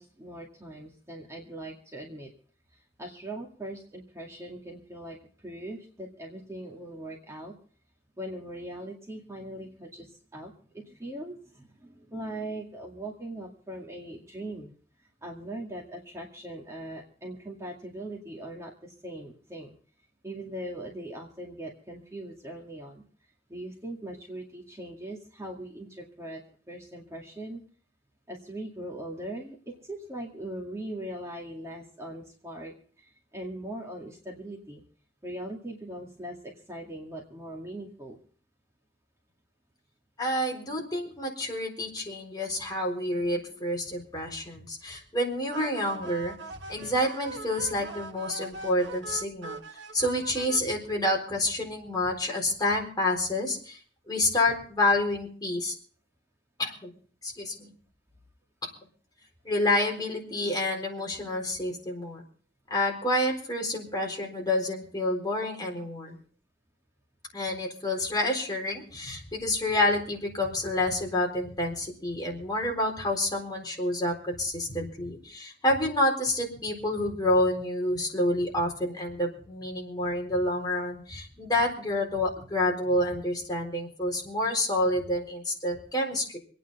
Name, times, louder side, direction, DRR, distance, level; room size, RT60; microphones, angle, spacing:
voice 1, 0.0-2.3 2.7-5.2 5.4-7.5 8.2-14.7 15.2-19.8 20.2-26.4 26.7-27.6 28.3-34.8 35.2-38.2 43.5-43.7 45.9-46.0 60.4-60.5 65.8-65.9, right 1 dB, 15° right, -1 dB, 2.1 m, -40 dB
voice 2, 40.2-46.3 46.7-49.6 49.9-53.8 54.1-55.7 56.6-56.9 57.2-57.7 58.6-58.7 59.4-62.2 62.7-66.2 67.3-86.4, left 1 dB, 25° left, 0 dB, 4.1 m, -28 dB
sound 1, 45.5-50.6, right 3 dB, 80° right, 1.0 m, -41 dB
27.0 x 9.4 x 4.1 m, 0.44 s
head